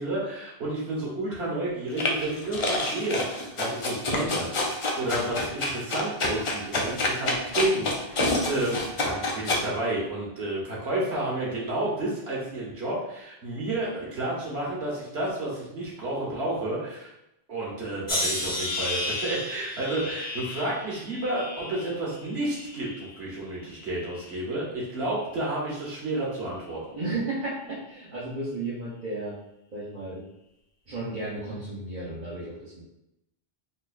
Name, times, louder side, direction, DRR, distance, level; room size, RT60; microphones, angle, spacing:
voice 1, 0.0-17.1 17.5-26.8, right 1 dB, 90° right, -5 dB, 1.5 m, -31 dB
sound 1, 2.0-9.6, left 2 dB, 40° left, 0.5 m, -27 dB
sound 2, 18.1-23.2 23.7-24.4 25.1-25.4, left 2 dB, 55° left, 1.4 m, -34 dB
voice 2, 26.9-29.4 29.7-30.2 30.9-32.8, right 2 dB, 50° right, -9 dB, 1.0 m, -33 dB
4.2 x 3.0 x 2.4 m, 0.87 s
omnidirectional pair, 1.0 m